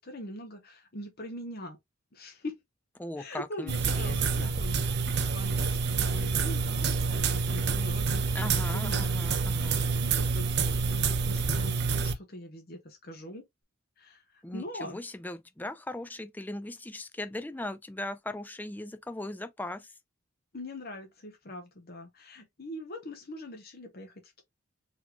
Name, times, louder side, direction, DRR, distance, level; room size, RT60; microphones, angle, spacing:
voice 1, 0.0-1.8 2.1-2.6 3.2-9.1 9.6-13.5 14.0-15.0 20.5-24.4, left 1 dB, 45° left, 0.9 m, -42 dB
voice 2, 3.0-3.7 4.0-4.5 8.3-9.8 14.4-19.9, left 1 dB, 10° left, 0.3 m, -39 dB
sound 1, 3.7-12.1, right 4 dB, 50° right, 0.5 m, -28 dB
4.1 x 2.9 x 2.8 m
head